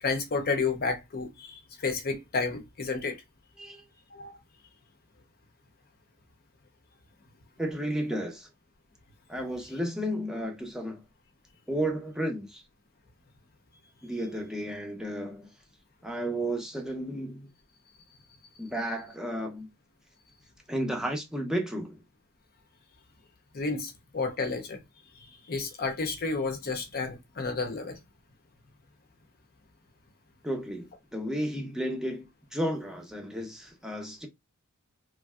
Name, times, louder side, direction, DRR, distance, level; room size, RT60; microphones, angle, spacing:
voice 1, 0.0-3.2 4.1-4.3 23.5-24.8 25.5-28.0, left 4 dB, 45° left, 0.6 m, -31 dB
voice 2, 7.6-8.5 9.3-11.0 11.7-12.6 14.0-15.5 16.0-17.5 18.6-19.7 20.7-22.0 30.4-34.3, right 1 dB, 5° right, 0.6 m, -33 dB
3.2 x 2.6 x 2.3 m
head